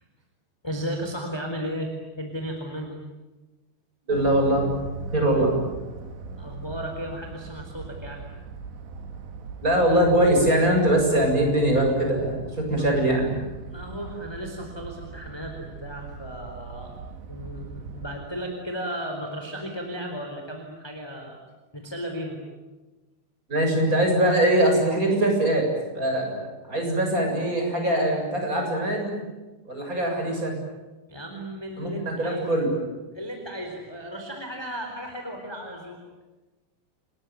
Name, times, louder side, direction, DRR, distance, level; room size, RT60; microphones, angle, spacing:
voice 1, 0.6-1.9 2.2-3.0 6.4-8.2 12.8-12.9 13.7-17.0 17.3-21.4 21.7-22.4 31.1-32.6 33.1-36.0, equal, 5° left, 2 dB, 3.3 m, -35 dB
voice 2, 4.1-4.7 5.1-5.5 9.6-13.4 23.5-25.7 25.9-29.1 29.7-30.5 31.8-32.8, right 1 dB, 15° right, 1 dB, 7.6 m, -22 dB
sound 1, 4.1-18.2, right 4 dB, 65° right, 4.3 m, -39 dB
29.5 x 21.0 x 9.6 m, 1.2 s
omnidirectional pair, 5.6 m